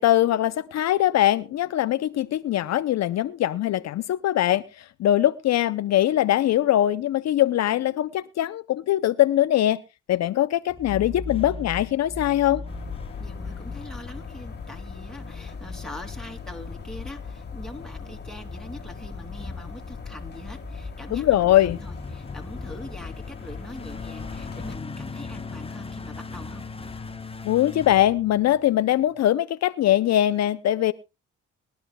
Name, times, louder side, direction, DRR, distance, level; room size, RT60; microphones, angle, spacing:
voice 1, 0.0-9.8 10.1-12.6 21.1-21.8 27.4-30.9, left 13 dB, 60° left, 0.6 m, -22 dB
sound 1, 10.7-28.8, left 4 dB, 20° left, 1.0 m, -39 dB
sound 2, 12.7-24.8, left 5 dB, 35° left, 1.6 m, -39 dB
voice 2, 13.2-26.6, left 1 dB, ahead, 2.6 m, -42 dB
23.0 x 12.0 x 2.2 m
cardioid pair, 90°, 30 cm